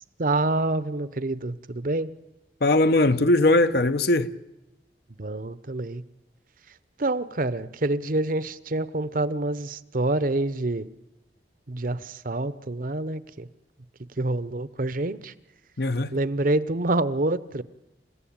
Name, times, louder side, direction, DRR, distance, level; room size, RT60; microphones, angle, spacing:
voice 1, 0.2-2.1 5.2-6.0 7.0-10.9 11.7-13.5 14.2-15.3 16.1-17.6, right 2 dB, 50° right, 0.9 m, -27 dB
voice 2, 2.6-4.3 15.8-16.1, left 2 dB, 60° left, 1.0 m, -20 dB
28.5 x 16.0 x 8.7 m
head